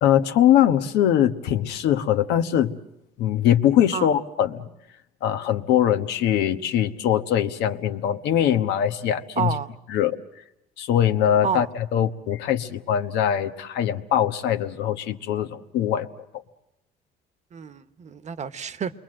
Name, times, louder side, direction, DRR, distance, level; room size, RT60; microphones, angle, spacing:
voice 1, 0.0-2.7 3.2-4.7 5.2-9.6 9.9-10.2 10.8-16.1, left 10 dB, 85° left, 8 dB, 1.2 m, -22 dB
voice 2, 9.4-9.7 11.4-11.7 17.5-18.9, right 7 dB, 45° right, 12 dB, 1.1 m, -29 dB
28.5 x 22.5 x 7.7 m, 0.85 s
cardioid pair, 110°, 17 cm